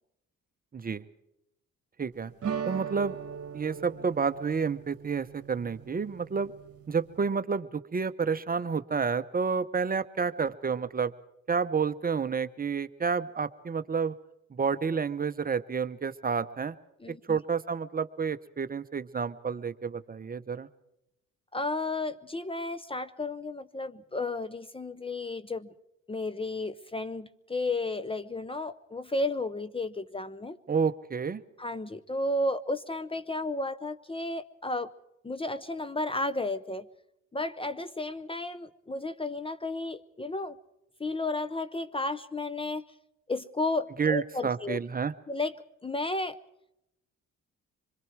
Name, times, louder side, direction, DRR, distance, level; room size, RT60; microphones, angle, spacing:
voice 1, 2.0-2.3 2.6-3.2 3.5-6.5 6.9-11.1 11.5-14.1 14.5-16.8 17.3-20.7 30.7-31.4 44.0-45.1, right 5 dB, 30° right, 11 dB, 0.8 m, -30 dB
sound 1, 2.4-7.3, right 7 dB, 50° right, 1.5 m, -39 dB
voice 2, 17.0-17.4 21.5-25.7 26.1-30.6 31.6-34.9 35.2-36.9 37.3-40.6 41.0-42.8 43.3-44.8 45.3-45.5 45.8-46.4, left 2 dB, 20° left, 13 dB, 0.7 m, -33 dB
25.5 x 22.0 x 4.7 m, 0.84 s
cardioid pair, 90°, 30 cm